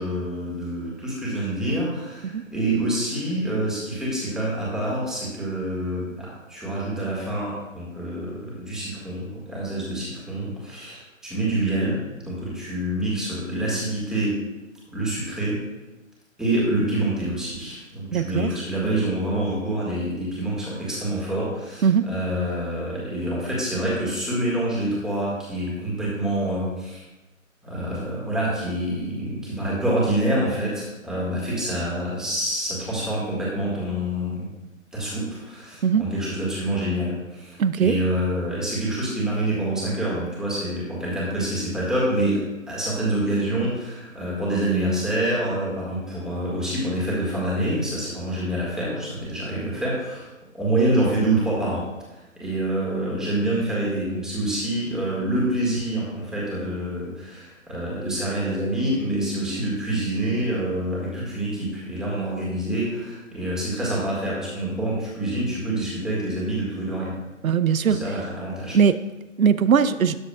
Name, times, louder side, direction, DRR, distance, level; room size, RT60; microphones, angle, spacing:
voice 1, 0.0-14.3 14.9-15.6 16.4-27.0 27.6-34.5 34.9-51.9 52.4-67.1 67.8-68.8, right 1 dB, ahead, -6 dB, 1.8 m, -26 dB
voice 2, 18.1-18.5 21.8-22.0 35.8-36.0 37.6-37.9 67.4-68.0 68.7-69.0 69.4-70.2, right 7 dB, 85° right, 14 dB, 0.8 m, -19 dB
13.0 x 10.5 x 2.4 m, 1.1 s
hypercardioid pair, 160°, 41 cm